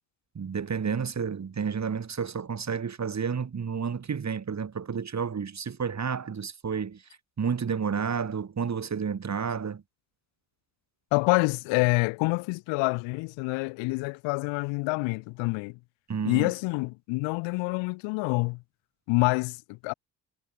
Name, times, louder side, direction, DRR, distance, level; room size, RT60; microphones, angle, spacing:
voice 1, 0.3-7.0 7.4-9.8 16.1-16.5, right 6 dB, 35° right, 2.7 m, -31 dB
voice 2, 11.1-15.8 16.2-18.6 19.1-19.9, left 27 dB, 70° left, 2.6 m, -27 dB
hypercardioid pair, 45°, 46 cm